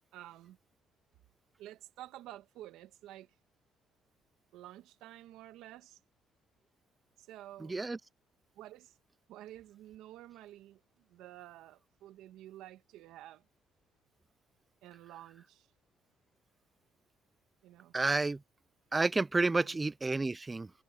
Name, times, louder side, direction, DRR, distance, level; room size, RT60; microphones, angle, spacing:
voice 1, 0.1-0.6 1.6-3.4 4.5-6.0 7.2-7.8 8.5-9.0 9.3-13.4 14.8-15.7 17.6-17.9 19.4-19.8, right 14 dB, 80° right, 1.4 m, -51 dB
voice 2, 7.6-8.0 17.9-18.4 18.9-20.7, right 3 dB, 20° right, 0.4 m, -30 dB
supercardioid pair, 80°, 0 cm